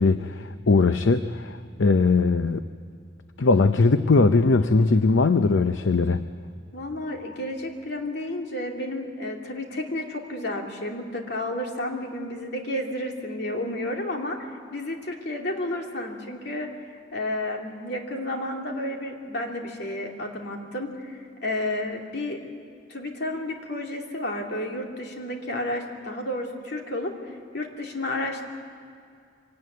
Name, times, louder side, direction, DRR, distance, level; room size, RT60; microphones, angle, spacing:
voice 1, 0.0-2.7 3.4-6.2, left 3 dB, 75° left, 10 dB, 0.6 m, -20 dB
voice 2, 6.7-16.7 17.1-22.4 22.9-27.1 27.5-28.4, left 1 dB, 60° left, 1 dB, 2.8 m, -31 dB
24.0 x 18.0 x 9.4 m, 2.4 s
head